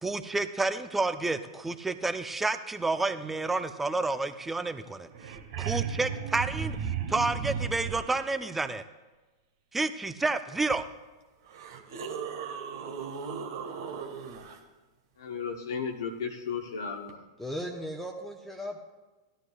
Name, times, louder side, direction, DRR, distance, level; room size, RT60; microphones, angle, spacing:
voice 1, 0.0-6.8 7.1-8.8 9.7-10.9, right 3 dB, 10° right, 11 dB, 0.6 m, -30 dB
sound 1, 4.8-4.9 5.1-8.2 10.7-10.8 11.5-14.6 17.1-17.2, right 7 dB, 60° right, 1.5 m, -35 dB
voice 2, 15.2-17.2, left 6 dB, 65° left, 1 dB, 0.9 m, -34 dB
voice 3, 17.4-18.8, equal, 5° left, 2 dB, 1.0 m, -36 dB
16.0 x 12.5 x 2.4 m, 1.2 s
figure-of-eight pair, 100°, 2 cm